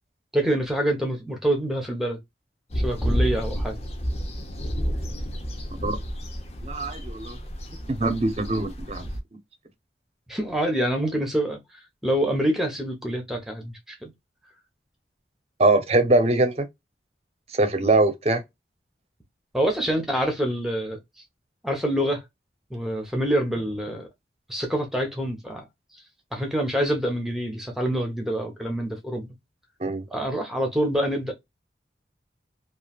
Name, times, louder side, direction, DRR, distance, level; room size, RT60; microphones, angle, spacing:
voice 1, 0.3-2.2 2.7-3.8 10.3-11.6 12.0-14.1 19.5-21.0 21.6-22.2 22.7-24.0 24.5-25.6 26.3-29.3 30.1-31.3, right 1 dB, ahead, 0.9 m, -26 dB
sound 1, 2.7-9.2, equal, 35° left, 0.6 m, -30 dB
voice 2, 6.6-7.4 7.9-9.1 15.6-16.7 17.5-18.4 29.8-30.1, right 2 dB, 35° right, 0.7 m, -22 dB
3.2 x 2.5 x 2.3 m
head